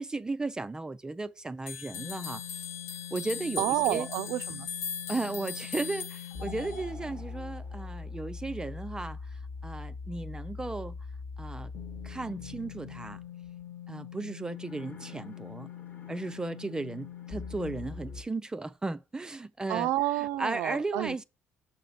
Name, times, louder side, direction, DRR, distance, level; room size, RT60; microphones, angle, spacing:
voice 1, 0.0-2.4 3.1-4.1 5.1-11.0 11.4-11.7 12.0-13.2 13.9-15.7 16.1-19.9 20.4-21.2, right 2 dB, 15° right, 0.3 m, -35 dB
sound 1, 1.7-6.9, left 7 dB, 70° left, 0.5 m, -39 dB
sound 2, 1.9-18.2, left 6 dB, 40° left, 1.0 m, -42 dB
voice 2, 3.6-4.7 19.7-21.2, right 16 dB, 85° right, 0.4 m, -30 dB
5.8 x 5.7 x 4.0 m
cardioid pair, 105°, 5 cm